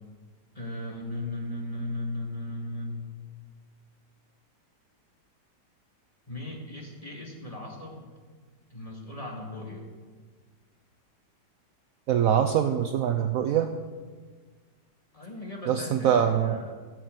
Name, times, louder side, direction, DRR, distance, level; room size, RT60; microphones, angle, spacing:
voice 1, 0.5-3.1 6.3-8.1 8.7-9.8 15.1-16.7, left 1 dB, 20° left, -1 dB, 2.1 m, -37 dB
voice 2, 12.1-13.7 15.7-16.6, right 9 dB, 65° right, 6 dB, 0.9 m, -23 dB
12.5 x 6.6 x 7.8 m, 1.5 s
omnidirectional pair, 1.9 m